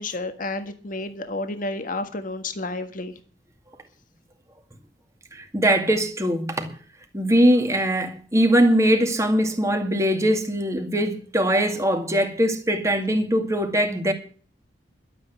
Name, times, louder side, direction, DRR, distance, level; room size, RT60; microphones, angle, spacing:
voice 1, 0.0-3.1, left 2 dB, 50° left, 1.6 m, -31 dB
voice 2, 5.3-6.7 7.1-14.1, equal, 20° right, 2.2 m, -21 dB
12.0 x 8.7 x 8.2 m
head